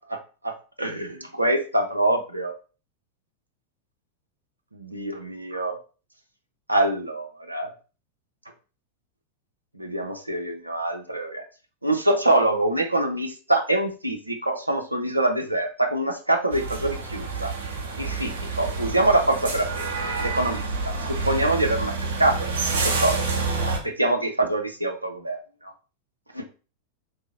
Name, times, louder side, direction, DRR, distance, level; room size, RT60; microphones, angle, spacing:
voice 1, 0.8-2.5 4.7-5.8 6.7-7.7 9.8-11.4 11.8-17.5 18.0-19.9 20.2-20.9 21.2-21.9 22.2-23.2 23.8-25.4 26.3-26.5, right 1 dB, 85° right, 4 dB, 0.5 m, -24 dB
sound 1, 16.5-23.8, right 3 dB, 60° right, 0.9 m, -28 dB
3.2 x 2.8 x 4.0 m, 0.35 s
figure-of-eight pair, 90°, 0 cm